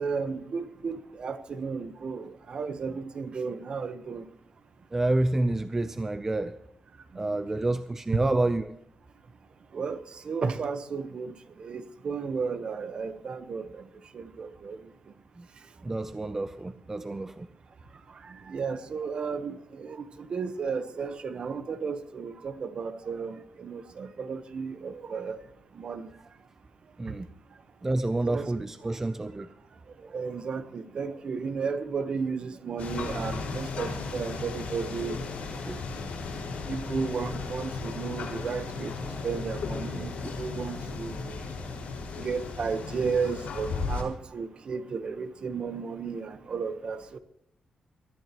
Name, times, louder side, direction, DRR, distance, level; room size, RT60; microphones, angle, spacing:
voice 1, 0.0-4.2 9.7-10.0 10.3-11.3 11.6-13.6 14.1-14.8 18.5-20.0 20.3-25.4 25.8-26.1 27.1-27.2 28.2-28.5 30.1-35.2 36.7-38.9 39.2-40.1 40.4-41.4 42.2-47.2, right 5 dB, 45° right, 11 dB, 1.0 m, -33 dB
voice 2, 4.9-6.6 7.2-8.7 15.4-15.5 15.8-17.5 27.0-27.3 27.8-29.5 35.6-35.8 40.2-40.3, right 2 dB, 15° right, 11 dB, 0.5 m, -28 dB
sound 1, 32.8-44.0, left 4 dB, 75° left, 5.0 m, -35 dB
22.5 x 13.5 x 3.0 m, 0.80 s
wide cardioid pair, 165°, 2 cm